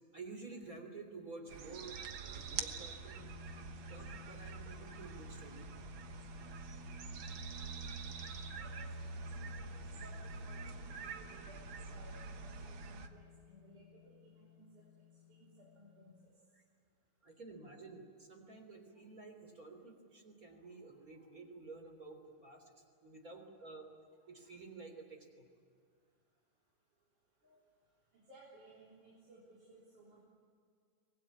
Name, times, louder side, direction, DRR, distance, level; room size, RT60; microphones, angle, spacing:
voice 1, 0.1-3.2 3.9-5.6 17.2-22.7 23.0-23.9 24.3-25.5 27.4-27.6, right 3 dB, 30° right, 4 dB, 3.7 m, -51 dB
sound 1, 1.5-13.1, right 4 dB, 55° right, 1.6 m, -45 dB
sound 2, 3.2-16.3, left 13 dB, 70° left, 1.3 m, -58 dB
voice 2, 8.6-14.9 15.3-16.3 28.1-30.2, right 1 dB, 80° right, -4 dB, 5.4 m, -60 dB
24.5 x 20.5 x 9.6 m, 2.2 s
omnidirectional pair, 3.4 m